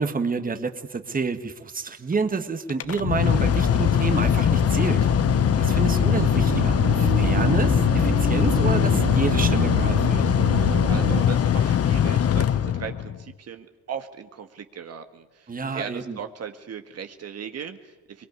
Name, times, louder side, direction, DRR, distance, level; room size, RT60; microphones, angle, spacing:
voice 1, 0.0-5.1 5.6-10.2 15.5-16.2, right 4 dB, 30° right, 8 dB, 1.8 m, -29 dB
Mechanical fan, 2.7-13.2, left 9 dB, 50° left, 1.0 m, -21 dB
sound 1, 2.8-11.2, right 7 dB, 75° right, 2.0 m, -30 dB
Motorcycle, 6.8-10.4, left 1 dB, 10° left, 2.4 m, -37 dB
voice 2, 10.8-18.3, right 7 dB, 55° right, 7 dB, 1.7 m, -38 dB
23.0 x 21.0 x 9.7 m, 1.1 s
cardioid pair, 90°, 30 cm